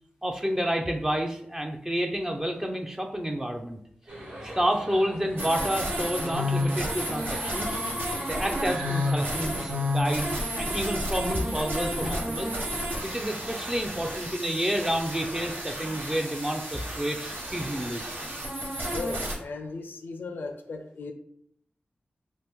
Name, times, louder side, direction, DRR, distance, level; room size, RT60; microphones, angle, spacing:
voice 1, 0.2-3.8 4.4-7.8 8.3-12.5 13.0-18.0, equal, 15° right, 2 dB, 0.4 m, -29 dB
sound 1, 4.1-9.9, right 1 dB, 60° right, 1.2 m, -40 dB
sound 2, 5.4-19.4, equal, 75° right, 0.9 m, -31 dB
voice 2, 18.9-21.1, left 3 dB, 85° left, 5 dB, 0.4 m, -36 dB
2.9 x 2.4 x 3.5 m, 0.68 s
cardioid pair, 55°, 3 cm